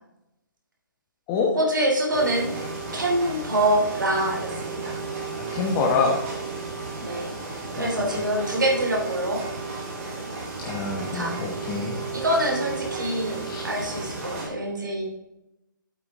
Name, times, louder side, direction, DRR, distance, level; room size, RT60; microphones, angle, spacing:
voice 1, 1.5-2.5 2.9-5.0 7.0-9.4 11.1-11.4 12.1-15.0, right 1 dB, 65° right, 0 dB, 3.1 m, -25 dB
sound 1, 2.1-14.5, right 4 dB, 40° right, 3.1 m, -33 dB
voice 2, 5.4-6.2 7.8-8.3 10.6-12.2 13.4-13.6, left 4 dB, 20° left, 0 dB, 1.0 m, -26 dB
8.6 x 8.4 x 3.6 m, 0.89 s
figure-of-eight pair, 140°, 11 cm